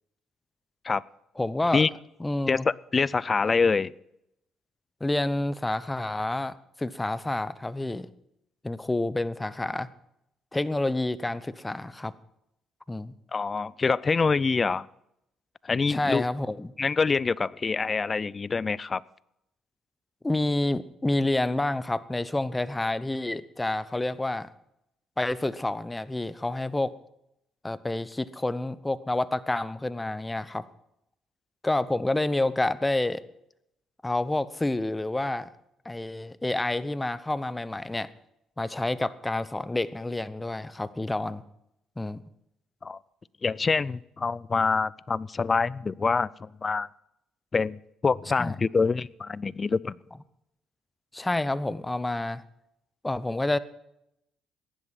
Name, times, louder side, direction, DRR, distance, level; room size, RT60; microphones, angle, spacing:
voice 1, 1.4-1.9 2.2-2.6 5.0-8.1 8.6-9.9 10.5-12.1 12.9-13.1 15.9-16.7 20.2-24.5 25.2-26.9 27.6-30.6 31.6-33.2 34.0-35.5 35.8-38.1 38.6-41.4 42.0-42.2 48.4-48.5 51.1-52.4 53.0-53.6, left 2 dB, 15° left, 17 dB, 0.9 m, -28 dB
voice 2, 2.5-3.9 13.3-14.9 15.6-16.2 16.8-19.0 42.8-43.0 43.4-46.9 47.5-50.0, left 4 dB, 35° left, 22 dB, 0.5 m, -25 dB
16.0 x 11.0 x 5.9 m, 0.80 s
supercardioid pair, 70°, 0 cm